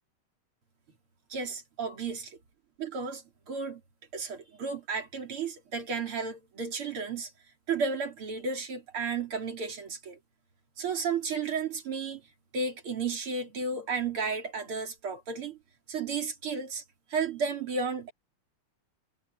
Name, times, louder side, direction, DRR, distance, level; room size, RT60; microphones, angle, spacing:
voice 1, 1.3-2.4 2.9-3.8 4.1-7.3 7.7-10.2 10.8-12.2 12.5-15.6 15.9-16.8 17.1-18.1, right 5 dB, 90° right, 3.9 m, -33 dB
omnidirectional pair, 2.3 m